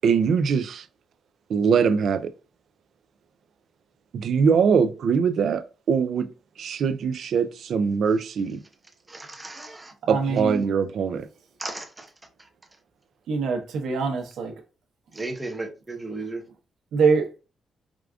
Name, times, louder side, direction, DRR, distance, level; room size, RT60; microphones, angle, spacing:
voice 1, 0.0-0.8 1.5-2.3 4.1-6.3 6.6-8.6 10.1-11.3, right 6 dB, 55° right, 0.3 m, -22 dB
voice 2, 9.1-9.9 11.6-12.1 15.1-16.4, right 2 dB, 10° right, 0.7 m, -34 dB
voice 3, 10.0-10.6 13.3-14.5 16.9-17.3, right 4 dB, 80° right, 0.9 m, -24 dB
4.8 x 2.4 x 2.3 m
wide cardioid pair, 175°, 0 cm